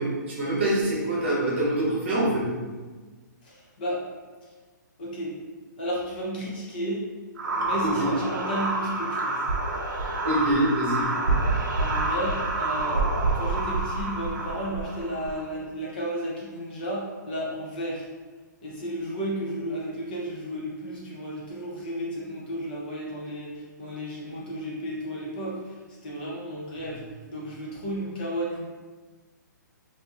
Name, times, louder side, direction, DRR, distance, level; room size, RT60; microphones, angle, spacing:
voice 1, 0.0-2.5 7.8-7.9 10.2-11.1, right 1 dB, 35° right, -5 dB, 0.9 m, -25 dB
voice 2, 3.4-4.0 4.4-4.5 5.0-5.4 5.8-7.1 7.5-9.4 11.7-13.1 13.3-18.1 18.6-27.0 27.3-28.6, equal, 30° left, -5 dB, 0.5 m, -33 dB
sound 1, 7.4-15.4, right 2 dB, 80° right, 0.6 m, -27 dB
4.2 x 2.6 x 2.3 m, 1.4 s
hypercardioid pair, 175°, 10 cm